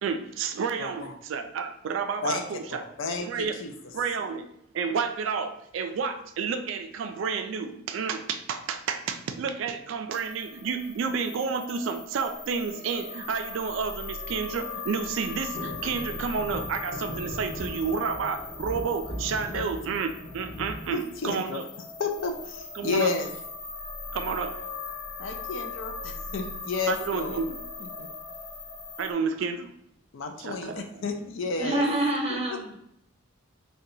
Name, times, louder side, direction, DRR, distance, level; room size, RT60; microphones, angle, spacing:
voice 1, 0.0-2.8 3.2-3.6 3.9-4.5 4.7-21.7 22.7-23.1 24.1-24.6 26.9-27.6 29.0-29.7 30.4-31.0, right 5 dB, 65° right, 7 dB, 0.3 m, -30 dB
voice 2, 0.8-1.1 2.2-2.4 2.7-3.7 19.5-19.7 20.9-21.6 22.0-23.3 25.2-27.4 27.8-28.1 30.1-31.8, left 4 dB, 65° left, 5 dB, 0.4 m, -31 dB
sound 1, 10.1-29.1, left 4 dB, 80° left, 0.9 m, -39 dB
sound 2, 15.5-21.7 22.1-22.7 24.0-24.4 24.7-24.8 25.1-25.4 26.2-27.1 27.6-27.7, equal, 20° left, 0.6 m, -40 dB
voice 3, 31.6-32.8, right 1 dB, 30° right, -1 dB, 0.7 m, -27 dB
2.7 x 2.2 x 3.9 m, 0.77 s
head